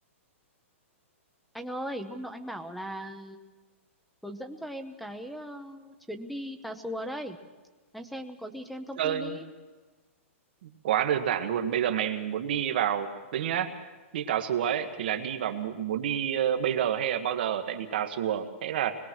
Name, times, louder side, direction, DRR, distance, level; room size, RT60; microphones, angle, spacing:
voice 1, 1.5-3.4 4.2-7.4 7.9-9.5, equal, ahead, 8 dB, 0.8 m, -38 dB
voice 2, 9.0-9.4 10.6-13.7 14.1-19.0, right 9 dB, 45° right, 6 dB, 1.7 m, -28 dB
24.5 x 21.0 x 6.3 m, 1.3 s
hypercardioid pair, 175°, 7 cm